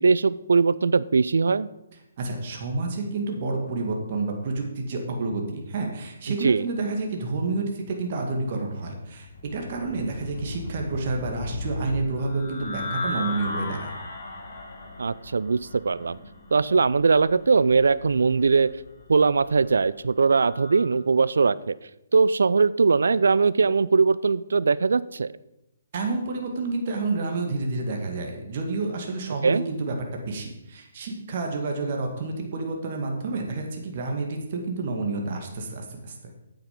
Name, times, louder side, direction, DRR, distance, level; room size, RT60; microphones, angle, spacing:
voice 1, 0.0-1.7 6.3-6.7 15.0-15.6 15.8-16.2 16.5-18.7 19.1-21.8 22.1-25.3 29.4-29.6, right 4 dB, 75° right, 19 dB, 0.4 m, -21 dB
voice 2, 2.2-13.9 25.9-36.1, right 3 dB, 45° right, 2 dB, 2.0 m, -29 dB
sound 1, 9.1-20.9, left 2 dB, 55° left, 2.6 m, -37 dB
8.9 x 8.5 x 5.2 m, 0.89 s
figure-of-eight pair, 140°, 0 cm